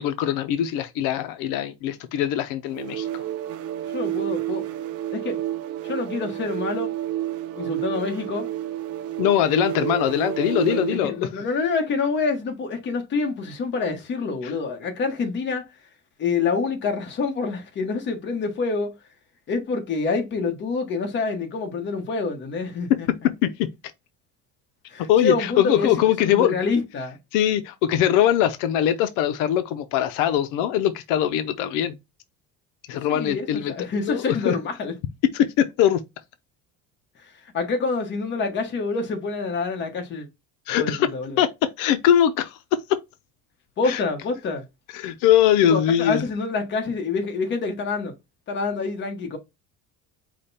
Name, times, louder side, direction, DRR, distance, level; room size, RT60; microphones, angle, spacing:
voice 1, 0.0-3.2 9.2-11.2 14.4-14.5 22.9-23.0 23.4-23.5 25.1-26.6 27.3-32.0 32.9-34.5 35.3-36.0 40.7-41.1 41.4-42.8 43.8-44.0 44.9-46.2, left 10 dB, 90° left, 0.6 m, -22 dB
sound 1, 2.7-11.1, right 13 dB, 55° right, 0.5 m, -30 dB
voice 2, 3.9-4.6 5.1-5.4 5.8-6.9 7.6-8.5 10.5-15.6 16.2-18.9 19.5-23.1 24.9-25.9 26.2-27.2 32.9-34.9 37.5-40.3 40.8-41.4 43.8-44.6 45.7-48.1 48.5-49.4, left 4 dB, 35° left, 1.2 m, -27 dB
5.0 x 2.2 x 4.1 m
cardioid pair, 155°, 30 cm